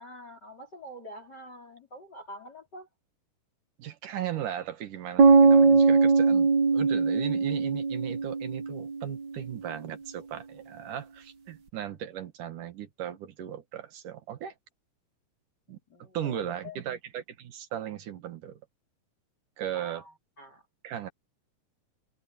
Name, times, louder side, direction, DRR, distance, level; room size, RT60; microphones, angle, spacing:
voice 1, 0.0-2.9 15.7-16.8 19.7-20.6, equal, 30° left, 4.2 m, -46 dB
voice 2, 3.8-14.5 15.7-15.8 16.1-18.6 19.6-20.0 20.8-21.1, right 10 dB, 65° right, 3.1 m, -37 dB
sound 1, 5.2-9.1, right 4 dB, 85° right, 0.9 m, -21 dB
omnidirectional pair, 4.0 m